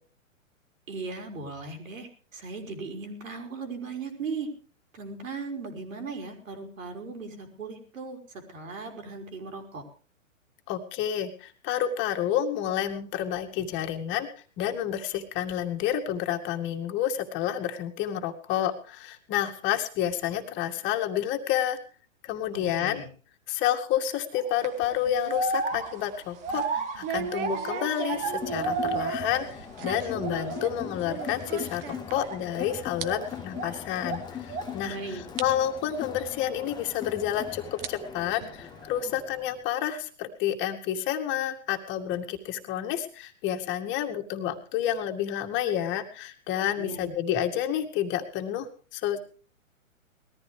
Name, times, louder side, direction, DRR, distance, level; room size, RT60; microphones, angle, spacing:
voice 1, 0.9-4.5 4.9-9.8 22.5-23.1 34.8-35.2 46.8-47.1, right 4 dB, 75° right, 4 dB, 5.0 m, -38 dB
voice 2, 10.7-14.3 14.6-21.8 22.2-23.0 23.5-35.0 35.4-49.2, left 10 dB, 30° left, 5 dB, 2.1 m, -29 dB
sound 1, 24.3-24.7 25.3-29.6 29.9-30.7 31.1-31.4 32.1-33.8 34.0-34.8, right 3 dB, 20° right, 1.6 m, -33 dB
sound 2, 24.6-32.5 32.8-33.1 33.4-33.5 34.2-34.3 34.8-34.9 35.4-35.5 36.8-36.9 37.6-39.0, right 8 dB, 45° right, 1.5 m, -38 dB
Crowd, 28.1-39.7, left 8 dB, 10° left, 0.9 m, -41 dB
20.5 x 14.0 x 3.4 m, 0.38 s
hypercardioid pair, 125°, 40 cm